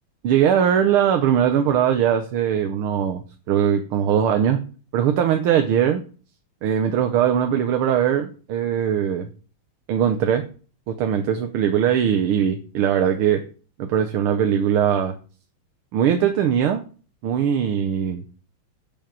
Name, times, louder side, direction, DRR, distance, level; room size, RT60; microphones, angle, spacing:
voice 1, 0.2-4.6 4.9-6.0 6.6-9.3 9.9-10.4 10.9-13.4 13.8-15.2 15.9-16.8 17.2-18.2, right 9 dB, 85° right, 6 dB, 1.8 m, -20 dB
10.5 x 5.6 x 7.3 m, 0.39 s
omnidirectional pair, 2.3 m